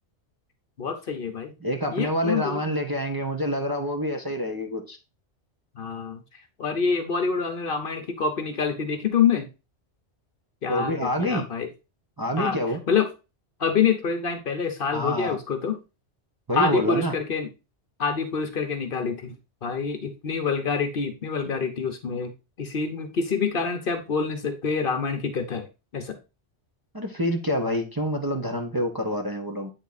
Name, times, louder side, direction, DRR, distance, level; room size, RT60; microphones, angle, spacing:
voice 1, 0.8-1.5 1.9-2.6 5.7-9.5 10.6-11.7 12.4-12.6 12.9-13.1 13.6-15.8 16.5-17.5 18.0-19.3 19.6-22.3 22.6-25.7 25.9-26.2, left 6 dB, 55° left, 0.9 m, -26 dB
voice 2, 1.6-5.0 10.7-11.4 12.2-12.8 14.9-15.4 16.5-17.1 26.9-29.7, equal, 20° right, 0.7 m, -27 dB
8.3 x 3.6 x 3.9 m
omnidirectional pair, 1.2 m